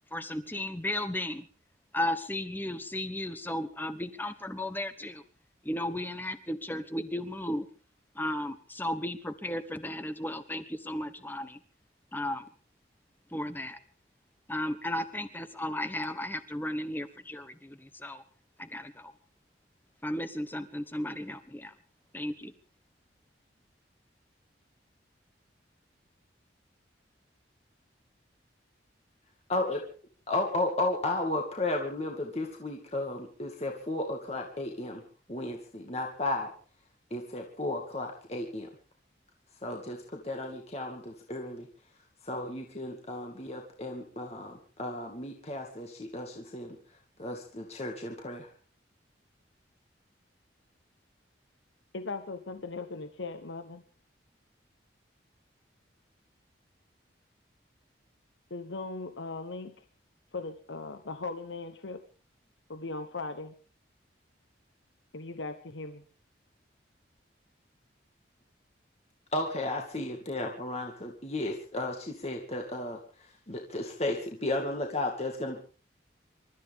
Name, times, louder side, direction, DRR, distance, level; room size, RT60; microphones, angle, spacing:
voice 1, 0.1-1.5 1.9-5.2 5.6-7.7 8.1-11.6 12.1-12.5 13.3-13.8 14.5-18.2 18.6-19.1 20.0-21.7 22.1-22.5, left 1 dB, 10° left, 11 dB, 1.2 m, -34 dB
voice 2, 29.5-29.8 30.3-35.0 35.3-36.5 37.1-38.7 39.6-41.7 42.2-46.8 47.2-48.5 69.3-73.0 73.5-75.6, left 2 dB, 35° left, 2 dB, 2.2 m, -34 dB
voice 3, 51.9-53.8 58.5-59.7 60.3-62.0 62.7-63.5 65.1-66.0, left 3 dB, 80° left, 9 dB, 1.2 m, -38 dB
27.5 x 13.5 x 3.7 m, 0.38 s
head